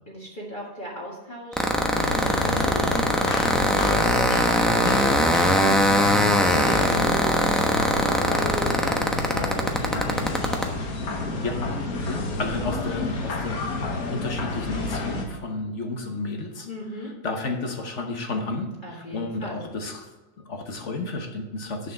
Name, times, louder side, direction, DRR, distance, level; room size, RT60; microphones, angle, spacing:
voice 1, 0.1-1.7 2.2-5.7 6.3-7.4 7.8-9.0 9.3-10.7 11.3-11.5 12.5-12.6 16.6-17.1 18.8-19.6, equal, 30° left, -4 dB, 1.9 m, -37 dB
sound 1, 1.5-10.6, equal, ahead, 0.8 m, -21 dB
sound 2, 1.9-15.3, left 3 dB, 65° left, 1.7 m, -29 dB
voice 2, 12.1-16.7 17.0-20.1 20.4-21.9, left 3 dB, 50° left, 4 dB, 1.4 m, -32 dB
6.9 x 6.9 x 7.8 m, 1.1 s
omnidirectional pair, 1.7 m